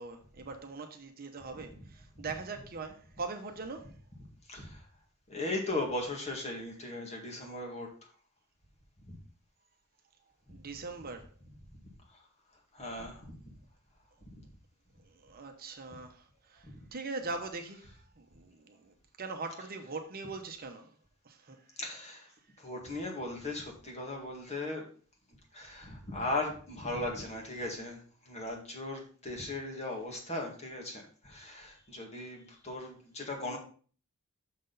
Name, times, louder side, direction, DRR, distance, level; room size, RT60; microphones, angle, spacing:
voice 1, 0.0-3.9 10.5-11.3 15.0-17.9 18.2-20.9 21.2-21.6 33.4-33.6, right 3 dB, 45° right, 5 dB, 0.9 m, -41 dB
voice 2, 4.5-4.9 5.3-7.9 9.1-9.2 12.1-12.2 12.7-13.5 14.3-14.4 16.6-16.8 17.8-17.9 19.6-19.7 21.8-22.3 22.6-24.8 25.5-33.6, left 2 dB, 30° left, 1 dB, 1.9 m, -38 dB
6.6 x 6.1 x 3.9 m, 0.42 s
head